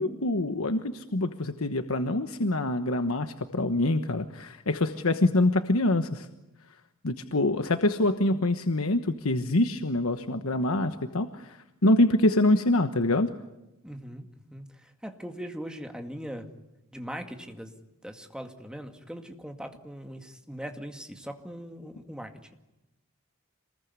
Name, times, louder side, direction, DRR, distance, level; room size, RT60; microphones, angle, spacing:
voice 1, 0.0-6.3 7.0-13.3, left 2 dB, 85° left, 8 dB, 1.2 m, -25 dB
voice 2, 13.8-16.5 16.9-17.7 18.0-22.5, equal, 5° right, 5 dB, 2.2 m, -40 dB
27.0 x 21.0 x 9.6 m, 0.95 s
head